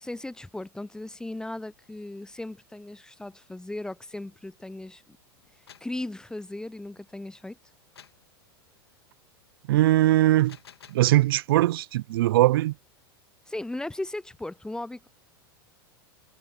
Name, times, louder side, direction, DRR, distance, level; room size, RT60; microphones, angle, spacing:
voice 1, 0.0-5.2 5.8-7.6 13.5-15.1, left 2 dB, 5° left, 0.6 m, -37 dB
sound 1, 5.4-6.0 8.0-8.3 10.3-11.1, left 8 dB, 85° left, 2.6 m, -51 dB
voice 2, 9.7-10.6 10.9-12.7, right 16 dB, 65° right, 0.5 m, -21 dB
hypercardioid pair, 95°, 13 cm